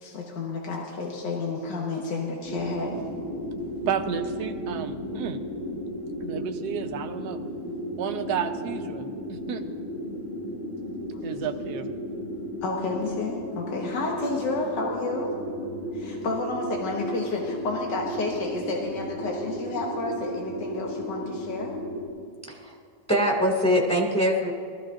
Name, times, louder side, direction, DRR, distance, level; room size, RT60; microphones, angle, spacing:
voice 1, 0.0-2.9 11.1-11.2 12.6-15.3 15.9-21.7, left 3 dB, 80° left, -1 dB, 1.9 m, -31 dB
sound 1, 2.4-22.1, equal, 45° left, 2.5 m, -34 dB
voice 2, 3.9-5.4 6.2-7.4 8.0-9.6 11.2-11.9, right 8 dB, 70° right, 5 dB, 1.2 m, -32 dB
voice 3, 23.1-24.5, equal, 5° left, -2 dB, 2.0 m, -23 dB
20.0 x 14.0 x 2.5 m, 2.2 s
omnidirectional pair, 1.9 m